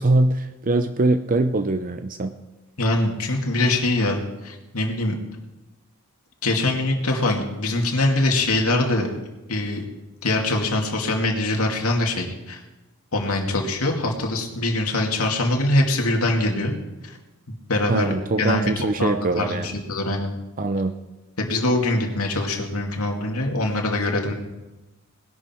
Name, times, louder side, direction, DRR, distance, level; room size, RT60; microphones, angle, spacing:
voice 1, 0.0-2.3 17.9-19.7 20.6-21.0, right 2 dB, 40° right, 9 dB, 0.6 m, -22 dB
voice 2, 2.8-5.2 6.4-9.1 9.5-9.8 10.2-12.6 13.1-16.7 17.0-17.2 17.7-18.1 18.4-20.3 21.4-24.3, left 2 dB, 90° left, 1 dB, 2.5 m, -23 dB
20.0 x 11.5 x 4.6 m, 1.0 s
head